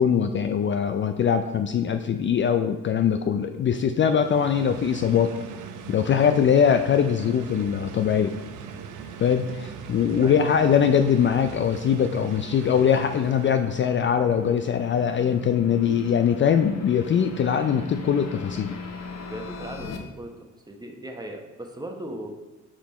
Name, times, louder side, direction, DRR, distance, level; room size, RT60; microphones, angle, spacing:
voice 1, 0.0-5.3 5.9-8.3 9.2-18.7, left 7 dB, 40° left, 7 dB, 0.4 m, -22 dB
sound 1, 3.9-13.9, right 6 dB, 85° right, 0.7 m, -40 dB
sound 2, 8.9-20.0, left 4 dB, 65° left, 1.0 m, -41 dB
voice 2, 19.3-20.3 20.7-22.3, right 1 dB, 15° right, 2 dB, 1.0 m, -37 dB
5.7 x 4.8 x 4.2 m, 1.2 s
cardioid pair, 90°, 30 cm